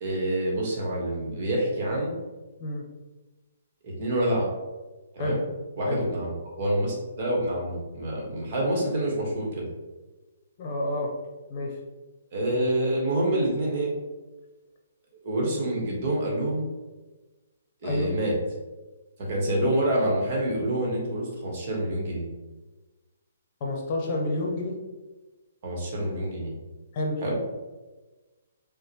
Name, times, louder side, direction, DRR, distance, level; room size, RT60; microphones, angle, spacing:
voice 1, 0.0-2.1 3.8-4.4 5.1-5.4 5.8-6.3 6.6-9.7 12.3-13.9 15.2-16.7 17.8-18.3 19.2-22.2 25.6-26.5 27.2-27.4, right 1 dB, 45° right, -2 dB, 1.3 m, -27 dB
voice 2, 10.6-11.1 11.5-11.7 17.8-18.1 23.6-24.8 26.9-27.2, left 1 dB, 40° left, 0 dB, 0.8 m, -28 dB
6.1 x 2.2 x 2.9 m, 1.2 s
figure-of-eight pair, 130°, 0 cm